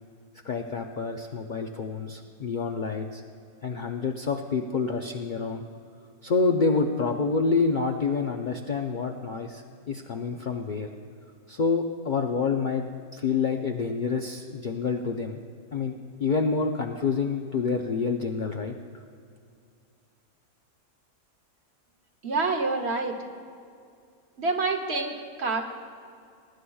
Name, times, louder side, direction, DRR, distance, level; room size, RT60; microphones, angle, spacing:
voice 1, 0.4-3.2 3.6-5.6 6.2-10.9 11.5-12.9 13.1-15.4 15.7-18.8, left 4 dB, 55° left, 3 dB, 0.5 m, -27 dB
voice 2, 22.2-23.2 24.4-25.6, right 3 dB, 50° right, 3 dB, 1.1 m, -27 dB
22.5 x 11.0 x 2.3 m, 2.4 s
omnidirectional pair, 1.5 m